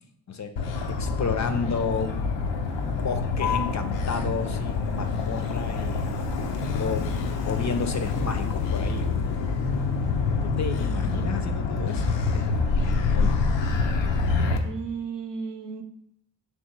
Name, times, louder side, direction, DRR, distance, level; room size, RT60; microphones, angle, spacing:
Motor vehicle (road), 0.6-14.6, left 4 dB, 80° left, 0.6 m, -26 dB
voice 1, 0.9-2.1 2.8-6.2 6.8-7.1 7.5-9.1 10.4-12.5 13.1-13.4, left 5 dB, 40° left, 7 dB, 0.6 m, -31 dB
voice 2, 10.9-11.2 14.6-15.8, right 5 dB, 75° right, 4 dB, 0.7 m, -34 dB
3.1 x 3.1 x 4.5 m, 0.76 s
supercardioid pair, 45°, 43 cm